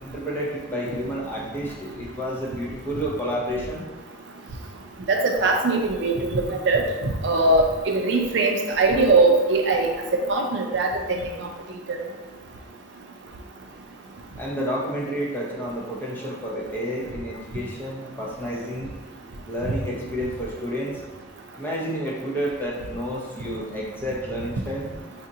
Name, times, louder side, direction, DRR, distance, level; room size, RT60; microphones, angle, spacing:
voice 1, 0.0-3.8 14.4-18.9 19.5-20.9 21.5-24.9, equal, 10° left, -4 dB, 0.6 m, -30 dB
voice 2, 5.1-6.8 7.2-9.9 10.3-11.3 11.9-12.0, right 3 dB, 65° right, 3 dB, 0.4 m, -21 dB
4.9 x 2.4 x 2.7 m, 1.2 s
head